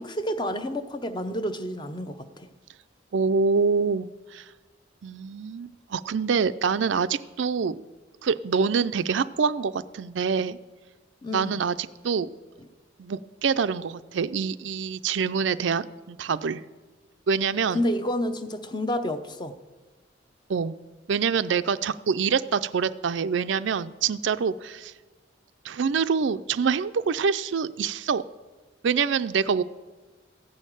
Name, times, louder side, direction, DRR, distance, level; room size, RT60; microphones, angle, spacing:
voice 1, 0.0-2.5 11.2-11.6 17.7-19.5, equal, 25° left, 9 dB, 0.7 m, -29 dB
voice 2, 3.1-4.4 5.0-7.8 8.2-10.6 11.3-11.8 12.0-12.3 13.0-16.6 17.3-17.8 20.5-20.7 21.1-24.9 25.6-28.2 28.8-29.6, right 5 dB, 75° right, 14 dB, 0.4 m, -25 dB
14.5 x 6.4 x 8.9 m, 1.2 s
head